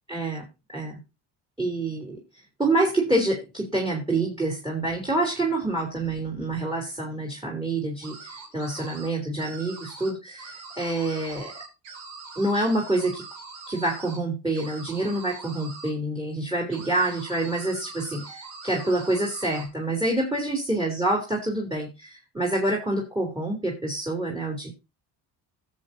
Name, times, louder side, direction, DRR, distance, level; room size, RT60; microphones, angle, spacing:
voice 1, 0.1-1.0 1.6-2.2 2.6-11.5 12.4-13.2 13.7-24.7, right 2 dB, 10° right, 1 dB, 3.7 m, -27 dB
sound 1, 8.0-9.1 9.4-10.1 10.4-14.2 14.5-15.9 16.7-19.7, right 4 dB, 90° right, 3.1 m, -42 dB
17.0 x 7.8 x 2.8 m, 0.25 s
supercardioid pair, 85°, 43 cm